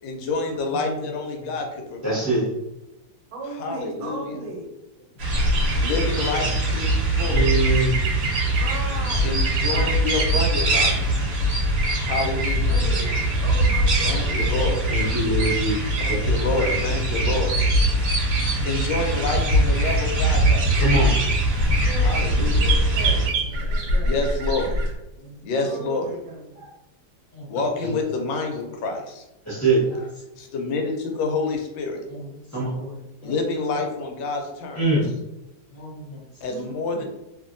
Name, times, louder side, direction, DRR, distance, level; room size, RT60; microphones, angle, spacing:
voice 1, 0.0-2.3 3.6-4.3 5.8-7.7 9.2-11.0 12.0-12.8 14.0-14.8 16.0-17.5 18.6-20.8 21.9-22.6 24.0-24.8 25.4-26.1 27.5-29.2 30.4-32.0 33.2-34.8 36.4-37.0, left 3 dB, 85° left, 3 dB, 1.4 m, -28 dB
voice 2, 0.5-1.1 1.3-1.6 4.2-4.4 5.6-5.9 10.5-10.7 11.0-11.2 11.7-11.8 14.0-14.8 18.8-18.9 23.5-23.6 25.2-25.3 25.8-25.9 27.3-27.5 27.8-28.0 32.1-33.5 35.7-36.2 37.0-37.1, left 1 dB, 65° left, -5 dB, 0.5 m, -40 dB
voice 3, 2.0-2.5 7.3-7.9 14.9-15.8 16.1-16.2 20.8-21.1 26.6-26.7 27.8-27.9 29.4-30.1 32.5-32.7 34.7-35.1, right 2 dB, 10° left, -9 dB, 1.0 m, -22 dB
voice 4, 3.3-4.7 8.6-9.3 9.7-10.0 12.6-14.7 16.5-17.4 21.8-22.1 22.5-23.3 23.6-24.2 25.6-26.6 36.5-37.0, right 2 dB, 70° right, 0 dB, 1.3 m, -36 dB
sound 1, 5.2-23.3, right 1 dB, 45° right, 1.0 m, -22 dB
sound 2, 5.3-24.9, right 2 dB, 90° right, 1.4 m, -29 dB
2.8 x 2.7 x 2.5 m, 0.93 s
omnidirectional pair, 2.0 m